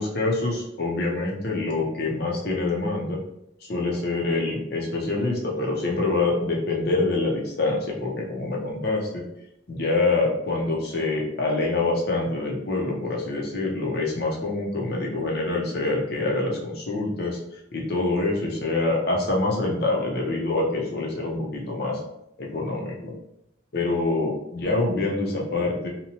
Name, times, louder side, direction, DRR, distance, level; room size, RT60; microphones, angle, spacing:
voice 1, 0.0-3.2 3.6-9.2 9.7-17.4 17.7-22.0 22.4-23.1 23.7-25.9, left 2 dB, 55° left, -2 dB, 0.6 m, -25 dB
2.8 x 2.1 x 2.8 m, 0.80 s
head